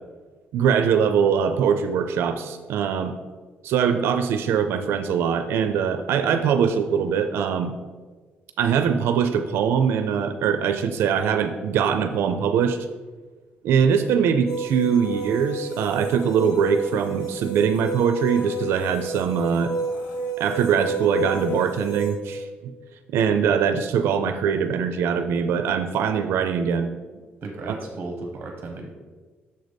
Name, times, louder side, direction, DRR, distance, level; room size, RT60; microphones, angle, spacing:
voice 1, 0.5-3.1 3.6-7.7 8.6-12.8 13.6-19.7 20.4-22.7 23.1-26.9, right 7 dB, 85° right, 8 dB, 0.4 m, -22 dB
sound 1, 14.5-22.1, right 2 dB, 70° left, 1.2 m, -30 dB
voice 2, 27.1-28.9, right 2 dB, 45° right, 2 dB, 0.9 m, -35 dB
6.6 x 4.0 x 5.1 m, 1.4 s
cardioid pair, 145°, 4 cm